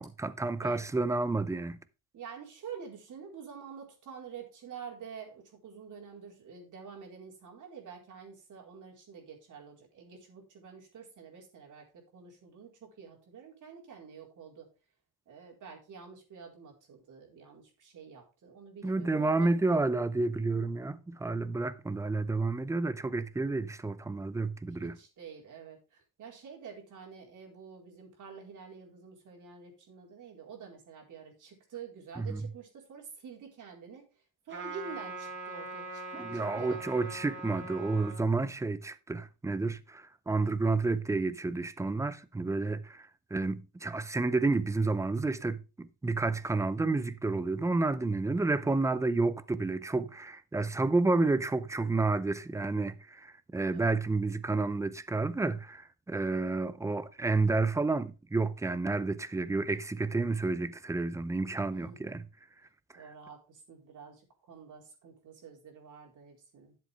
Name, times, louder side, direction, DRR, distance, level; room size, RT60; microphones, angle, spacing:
voice 1, 0.0-1.8 18.8-25.0 32.2-32.5 36.2-62.2, right 3 dB, 10° right, 0.6 m, -30 dB
voice 2, 2.1-14.7 15.3-19.5 24.8-34.1 34.4-36.8 53.7-54.0 61.7-62.1 62.9-66.8, right 6 dB, 50° right, 4.4 m, -48 dB
Trumpet, 34.5-38.2, right 3 dB, 30° right, 4.4 m, -42 dB
12.0 x 7.7 x 3.5 m
cardioid pair, 130°, 40 cm